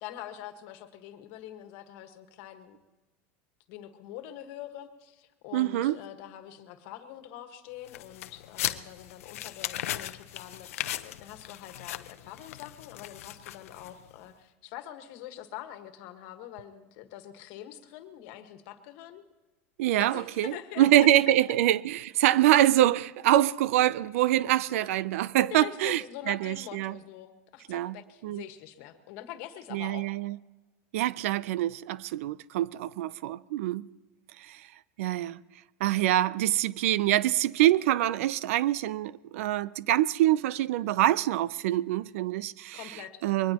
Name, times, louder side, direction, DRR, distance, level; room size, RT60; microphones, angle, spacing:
voice 1, 0.0-2.8 3.7-19.3 20.0-20.9 24.8-25.0 25.5-30.1 42.7-43.2, left 12 dB, 60° left, 1.5 m, -44 dB
voice 2, 5.5-6.0 19.8-27.0 27.7-28.0 28.2-28.4 29.7-30.4 30.9-33.9 34.4-34.7 35.0-35.4 35.8-42.9 43.2-43.5, right 13 dB, 80° right, 0.5 m, -25 dB
sound 1, 7.9-14.1, left 13 dB, 90° left, 0.7 m, -37 dB
23.0 x 19.5 x 2.9 m
supercardioid pair, 130°, 7 cm